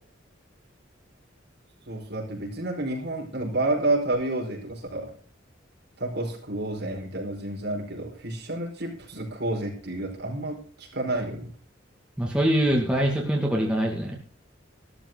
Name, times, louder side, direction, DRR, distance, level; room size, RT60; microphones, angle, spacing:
voice 1, 1.9-5.1 6.0-11.5, right 2 dB, 60° right, 0 dB, 4.9 m, -30 dB
voice 2, 12.2-14.2, right 1 dB, 5° right, -1 dB, 2.3 m, -23 dB
14.5 x 13.0 x 4.0 m, 0.43 s
head